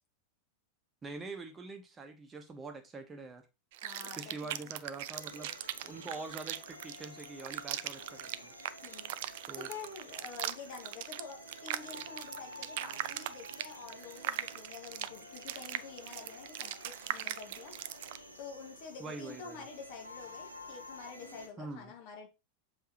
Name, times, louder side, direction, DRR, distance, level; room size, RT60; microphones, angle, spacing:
voice 1, 1.0-3.4 4.2-5.5 5.8-8.5 9.5-9.7 19.0-19.7 21.6-21.9, right 3 dB, 20° right, 6 dB, 1.4 m, -44 dB
sound 1, 3.7-18.2, right 13 dB, 50° right, 0.4 m, -40 dB
voice 2, 3.8-4.7 6.1-6.2 8.8-9.1 9.6-17.7 18.4-22.3, left 6 dB, 45° left, 2 dB, 2.1 m, -48 dB
sound 2, 5.1-21.5, equal, 85° right, 1.4 m, -51 dB
7.2 x 4.8 x 3.1 m, 0.27 s
figure-of-eight pair, 90°, 0 cm